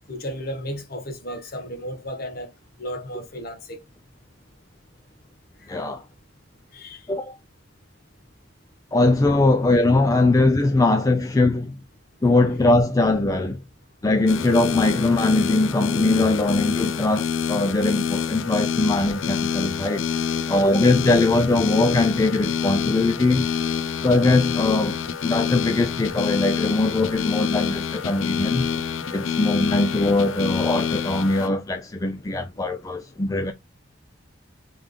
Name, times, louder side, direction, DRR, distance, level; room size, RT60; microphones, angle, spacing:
voice 1, 0.1-2.5 2.8-3.8 5.6-5.7 6.7-7.1 20.4-20.5, equal, 50° left, 1.1 m, -34 dB
voice 2, 5.7-6.0 7.1-7.3 8.9-11.8 12.2-13.6 14.0-20.1 20.5-23.5 24.0-25.0 25.2-28.7 29.1-33.5, left 2 dB, 15° left, 0.4 m, -21 dB
sound 1, 14.3-31.5, left 7 dB, 85° left, 0.5 m, -27 dB
3.5 x 3.3 x 3.6 m
head